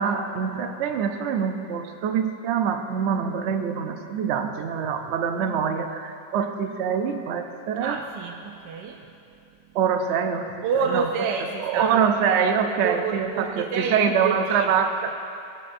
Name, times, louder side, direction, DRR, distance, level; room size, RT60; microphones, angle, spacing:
voice 1, 0.0-8.0 9.7-10.7 10.9-11.0 11.6-15.2, right 7 dB, 70° right, 6 dB, 0.6 m, -25 dB
voice 2, 7.8-9.0 10.6-12.5 12.8-14.8, right 5 dB, 90° right, 2 dB, 1.2 m, -29 dB
15.5 x 7.4 x 2.6 m, 2.5 s
omnidirectional pair, 1.8 m